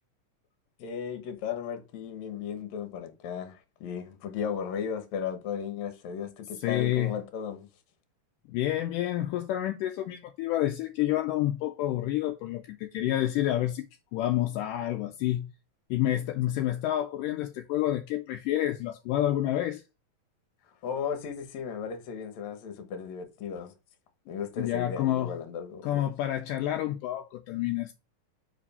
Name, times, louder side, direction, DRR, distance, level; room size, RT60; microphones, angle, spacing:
voice 1, 0.8-7.7 20.8-23.7 24.3-26.1, left 7 dB, 65° left, 2.2 m, -35 dB
voice 2, 6.6-7.2 8.5-13.9 14.1-15.5 15.9-19.8 24.6-25.3 25.8-27.9, left 13 dB, 80° left, 2.1 m, -29 dB
5.3 x 5.0 x 5.4 m
omnidirectional pair, 3.9 m